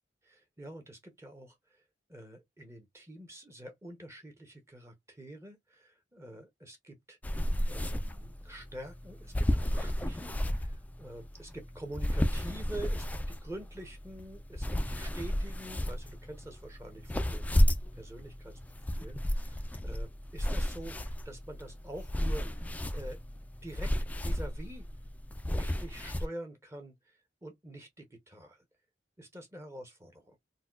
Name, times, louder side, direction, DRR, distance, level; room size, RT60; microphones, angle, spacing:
voice 1, 0.2-7.4 7.7-18.6 18.9-23.2 23.6-24.9 25.5-28.6 29.2-30.4, right 1 dB, 15° right, 0.7 m, -47 dB
sound 1, 7.2-26.3, equal, 10° left, 0.3 m, -33 dB
4.1 x 2.2 x 2.3 m
head